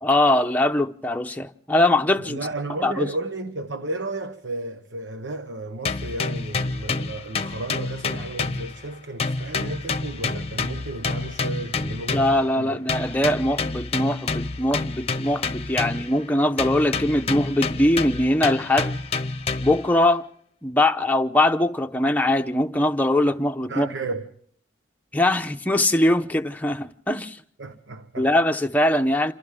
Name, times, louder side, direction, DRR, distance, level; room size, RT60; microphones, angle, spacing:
voice 1, 0.0-2.4 2.8-3.1 12.1-19.0 19.6-20.3 20.6-23.9 25.1-27.4 28.2-29.3, left 1 dB, 10° left, 0.8 m, -21 dB
voice 2, 2.2-12.8 23.7-24.3 27.6-28.3, right 2 dB, 80° right, 1.2 m, -33 dB
sound 1, 5.8-8.9 9.2-12.5 12.9-16.2 16.6-19.9, left 3 dB, 35° left, 0.8 m, -28 dB
27.5 x 27.0 x 3.7 m
head